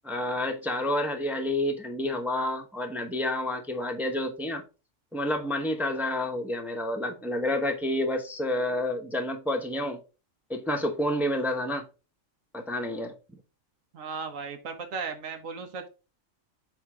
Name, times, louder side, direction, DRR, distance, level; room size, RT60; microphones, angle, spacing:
voice 1, 0.0-4.6 5.1-10.0 10.5-11.8 12.5-13.1, left 1 dB, ahead, 0.7 m, -29 dB
voice 2, 13.9-15.9, right 5 dB, 85° right, 1.4 m, -36 dB
7.5 x 2.8 x 4.8 m
omnidirectional pair, 1.3 m